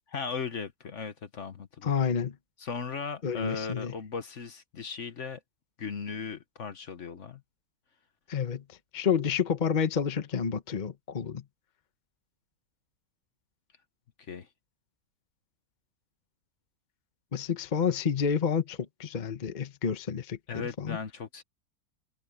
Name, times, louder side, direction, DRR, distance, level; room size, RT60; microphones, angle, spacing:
voice 1, 0.1-1.9 2.6-5.4 5.8-7.4 14.2-14.5 20.5-21.4, left 5 dB, 50° left, 1.3 m, -37 dB
voice 2, 1.8-2.4 3.2-3.9 8.3-11.4 17.3-21.0, left 7 dB, 35° left, 1.0 m, -29 dB
omnidirectional pair, 1.7 m